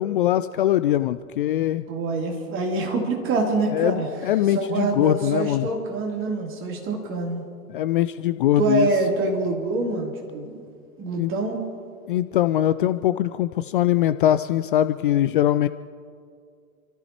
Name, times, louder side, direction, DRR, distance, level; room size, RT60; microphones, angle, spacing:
voice 1, 0.0-1.8 3.7-5.7 7.7-8.9 11.2-11.3 12.1-15.7, left 12 dB, 40° left, 13 dB, 0.4 m, -22 dB
voice 2, 1.9-4.1 4.5-7.4 8.6-10.5 11.0-11.6, right 3 dB, 30° right, -1 dB, 3.3 m, -25 dB
29.0 x 14.0 x 3.0 m, 2.3 s
figure-of-eight pair, 100°, 42 cm